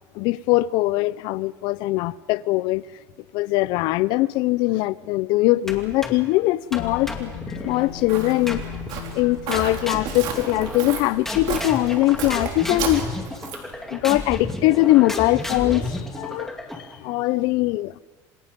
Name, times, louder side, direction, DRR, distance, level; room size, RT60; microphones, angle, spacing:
voice 1, 0.2-2.8 3.3-7.3 7.6-8.6 9.1-13.0 13.9-16.5 17.0-17.9, left 18 dB, 65° left, 0.6 m, -21 dB
sound 1, 5.7-6.3 6.7-7.9 8.5-9.0 9.5-11.0 11.3-17.0, left 1 dB, 5° left, 2.4 m, -32 dB
sound 2, 6.8-11.5, left 14 dB, 85° left, 1.5 m, -38 dB
Walk footsteps, 7.5-13.8, right 7 dB, 60° right, 4.3 m, -33 dB
27.5 x 27.0 x 5.3 m
cardioid pair, 160°, 8 cm